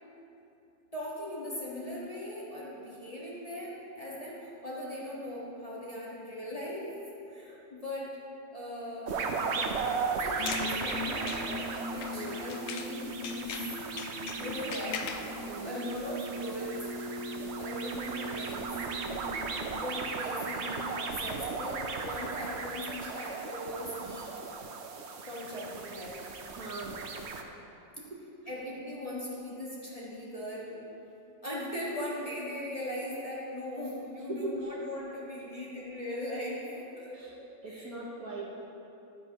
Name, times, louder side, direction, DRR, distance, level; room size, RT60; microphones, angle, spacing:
voice 1, 0.9-8.2 8.5-9.8 10.2-13.5 14.3-15.0 15.6-16.9 17.6-18.7 19.7-24.3 25.2-26.2 28.5-30.8 31.4-37.2 37.7-37.9, left 1 dB, 20° left, -7 dB, 1.4 m, -39 dB
sound 1, 9.1-27.4, right 4 dB, 80° right, 0.6 m, -37 dB
sound 2, 10.2-13.0 13.2-15.3, left 7 dB, 85° left, 0.7 m, -41 dB
sound 3, 10.2-20.6, equal, 50° left, 1.8 m, -41 dB
voice 2, 26.5-27.0 34.3-34.7 37.1-37.3 37.6-38.6, right 2 dB, 55° right, -3 dB, 1.3 m, -39 dB
12.0 x 9.8 x 2.9 m, 2.8 s
omnidirectional pair, 2.0 m